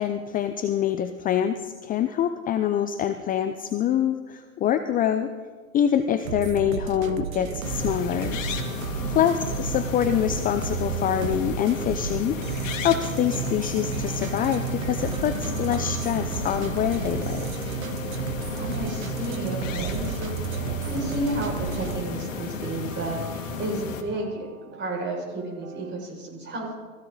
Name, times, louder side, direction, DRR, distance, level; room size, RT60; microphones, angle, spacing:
voice 1, 0.0-5.3 5.7-8.4 9.1-17.5, left 10 dB, 20° left, 10 dB, 0.6 m, -25 dB
sound 1, 6.2-25.9, right 8 dB, 75° right, 1.3 m, -33 dB
sound 2, 7.6-24.0, left 5 dB, 65° left, 2.2 m, -34 dB
voice 2, 9.0-9.4 18.4-24.5 24.7-26.7, right 1 dB, 25° right, 0 dB, 6.0 m, -32 dB
23.5 x 15.5 x 4.0 m, 1.5 s
hypercardioid pair, 105°, 41 cm